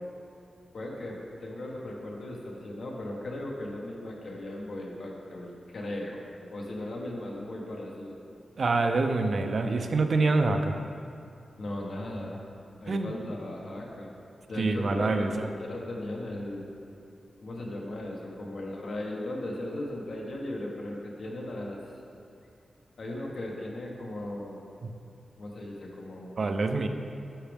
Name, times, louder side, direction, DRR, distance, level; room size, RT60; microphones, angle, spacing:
voice 1, 0.7-8.1 11.6-12.4 12.8-14.1 14.5-16.7 17.4-21.9 23.0-24.6 25.4-26.4, left 1 dB, 55° left, -2 dB, 1.4 m, -37 dB
voice 2, 8.6-10.8 12.9-13.1 14.6-15.5 24.8-24.9 26.4-26.9, right 3 dB, 45° right, 6 dB, 0.5 m, -26 dB
11.5 x 6.6 x 3.5 m, 2.5 s
wide cardioid pair, 175°, 0 cm